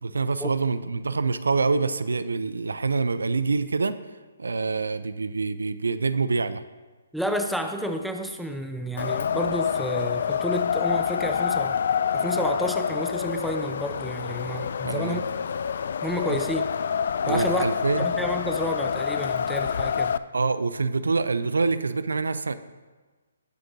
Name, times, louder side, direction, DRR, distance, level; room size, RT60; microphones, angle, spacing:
voice 1, 0.0-3.9 4.4-6.6 14.8-15.2 16.3-16.4 17.2-18.1 20.3-22.5, right 4 dB, 75° right, 14 dB, 0.5 m, -26 dB
voice 2, 7.1-11.8 12.1-15.2 16.0-16.6 17.3-17.7 18.0-20.1, equal, ahead, 5 dB, 0.7 m, -30 dB
Wind, 9.0-20.2, left 7 dB, 55° left, 0.3 m, -27 dB
19.0 x 7.9 x 2.7 m, 1.3 s
figure-of-eight pair, 135°, 0 cm